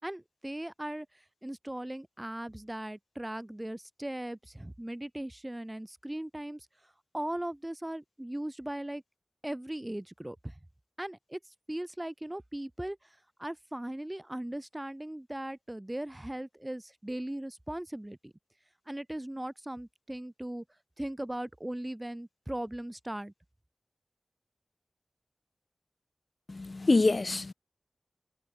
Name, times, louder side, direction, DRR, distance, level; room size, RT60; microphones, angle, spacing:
voice 1, 0.0-9.0 9.4-10.6 11.0-18.3 18.9-20.6 21.0-23.3, right 1 dB, 20° right, 2.8 m, -39 dB
voice 2, 26.5-27.5, left 3 dB, 55° left, 0.7 m, -25 dB
wide cardioid pair, 50°, 0 cm